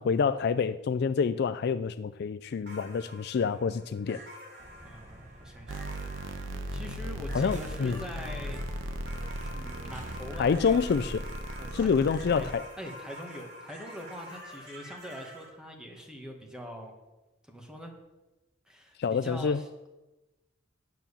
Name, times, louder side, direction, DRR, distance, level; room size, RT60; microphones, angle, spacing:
voice 1, 0.0-4.2 7.3-8.0 10.4-11.2 11.7-12.6 19.0-19.6, left 5 dB, 55° left, 0.3 m, -27 dB
sound 1, 2.6-15.5, equal, 60° right, 3.6 m, -47 dB
sound 2, 4.6-10.5, right 1 dB, 40° right, 1.3 m, -50 dB
voice 2, 4.8-5.8 6.7-8.6 9.5-10.8 11.6-12.0 12.3-12.5 12.8-16.9 17.5-17.9 18.7-19.9, equal, 5° right, 1.6 m, -43 dB
sound 3, 5.7-12.5, right 1 dB, 80° right, 1.0 m, -37 dB
9.3 x 7.5 x 6.9 m
head